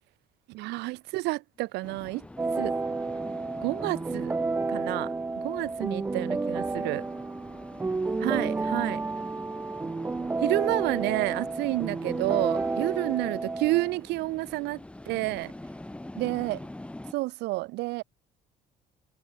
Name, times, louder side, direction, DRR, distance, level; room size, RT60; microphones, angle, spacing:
voice 1, 0.5-2.3 2.5-2.7 3.6-4.3 4.7-7.0 8.2-9.0 10.4-15.5 16.2-16.6 17.1-18.0, right 21 dB, 85° right, 0.5 m, -30 dB
voice 2, 1.5-2.0 5.5-5.7 13.2-13.6 15.9-16.8, left 4 dB, 25° left, 6.8 m, -65 dB
sound 1, 1.8-17.1, left 1 dB, 5° left, 1.1 m, -44 dB
sound 2, 2.4-14.0, right 3 dB, 10° right, 0.3 m, -31 dB
cardioid pair, 110°, 17 cm